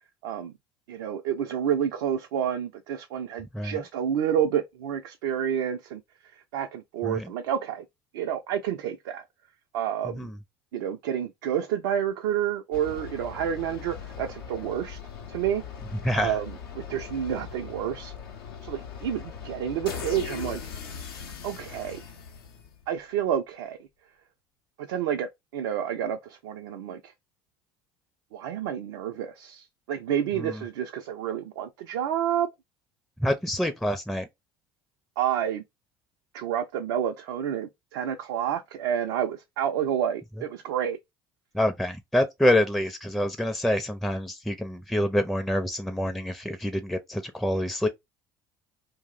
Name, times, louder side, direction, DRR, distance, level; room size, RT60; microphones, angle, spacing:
voice 1, 0.2-0.5 0.9-6.0 6.3-7.8 8.1-9.3 9.7-10.3 10.7-15.0 15.3-15.6 16.1-18.1 18.6-20.7 21.2-22.0 22.9-23.8 24.8-27.1 28.3-32.5 35.2-35.6 36.3-41.0, right 9 dB, 75° right, 0.4 m, -29 dB
sound 1, 12.7-23.0, left 7 dB, 85° left, 0.6 m, -40 dB
voice 2, 33.2-34.3 41.5-47.9, left 1 dB, ahead, 0.4 m, -26 dB
2.5 x 2.0 x 3.6 m
hypercardioid pair, 65°, 12 cm